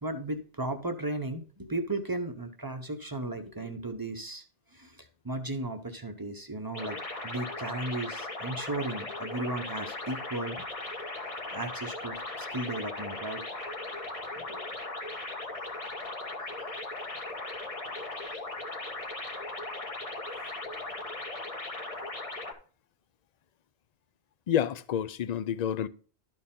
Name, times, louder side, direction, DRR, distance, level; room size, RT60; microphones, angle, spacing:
voice 1, 0.0-4.4 4.7-7.0 7.2-10.6 11.5-13.4 14.4-14.6, right 2 dB, 20° right, 0.8 m, -35 dB
sound 1, 6.7-22.5, left 2 dB, 35° left, 1.3 m, -38 dB
voice 2, 24.5-25.9, left 9 dB, 55° left, 0.5 m, -29 dB
12.5 x 4.6 x 3.7 m
omnidirectional pair, 1.1 m